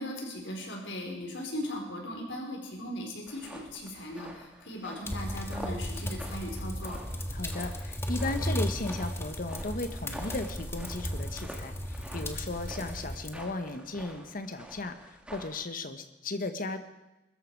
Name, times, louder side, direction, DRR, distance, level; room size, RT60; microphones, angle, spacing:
voice 1, 0.0-7.0, left 1 dB, 80° left, 1 dB, 4.5 m, -38 dB
sound 1, 3.3-15.7, right 1 dB, 5° right, 2.0 m, -47 dB
sound 2, 5.1-13.3, equal, 15° left, 1.5 m, -35 dB
voice 2, 7.3-16.8, left 2 dB, 50° left, 8 dB, 1.4 m, -36 dB
22.0 x 13.5 x 4.8 m, 1.0 s
head